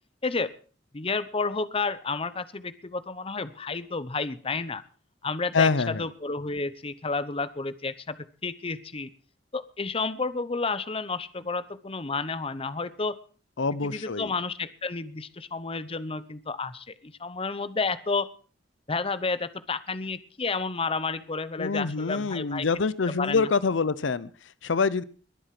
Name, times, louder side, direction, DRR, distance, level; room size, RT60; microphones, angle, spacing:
voice 1, 0.2-0.5 0.9-4.8 5.2-8.2 8.4-9.1 9.5-13.2 13.8-18.3 18.9-22.7 23.1-23.5, left 4 dB, 30° left, 14 dB, 0.9 m, -31 dB
voice 2, 5.5-6.1 13.6-14.3 21.6-25.0, left 4 dB, 90° left, 18 dB, 0.7 m, -26 dB
21.5 x 8.0 x 5.9 m, 0.40 s
head